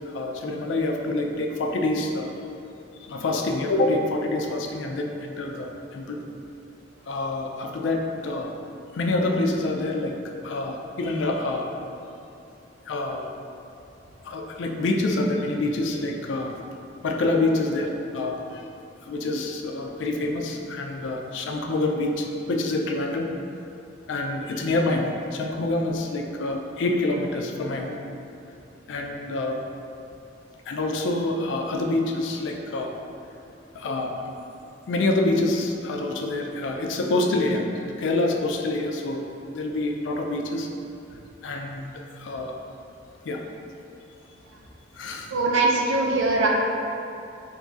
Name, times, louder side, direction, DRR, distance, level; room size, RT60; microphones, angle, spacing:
voice 1, 0.1-2.3 3.0-6.2 7.1-8.6 8.9-10.2 10.4-11.7 12.9-13.3 14.2-16.6 17.0-18.7 19.0-23.3 24.1-27.9 28.9-29.6 30.7-32.9 33.7-34.3 34.9-37.6 38.0-40.7 41.4-42.5 43.2-43.4 44.9-45.3, left 2 dB, 70° left, 2 dB, 0.4 m, -26 dB
voice 2, 45.3-46.5, right 3 dB, 80° right, -2 dB, 0.5 m, -21 dB
3.0 x 2.4 x 3.8 m, 2.7 s
head